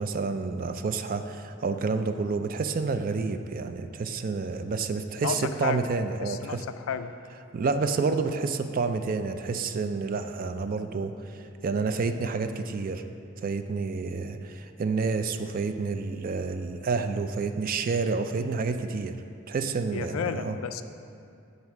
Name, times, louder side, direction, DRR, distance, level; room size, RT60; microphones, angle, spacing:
voice 1, 0.0-6.6 7.5-13.0 13.4-19.1 19.5-20.5, right 4 dB, 45° right, 8 dB, 0.3 m, -29 dB
voice 2, 5.2-5.9 6.2-7.1 19.9-20.8, left 7 dB, 70° left, 10 dB, 0.3 m, -32 dB
8.0 x 4.0 x 5.8 m, 2.5 s
head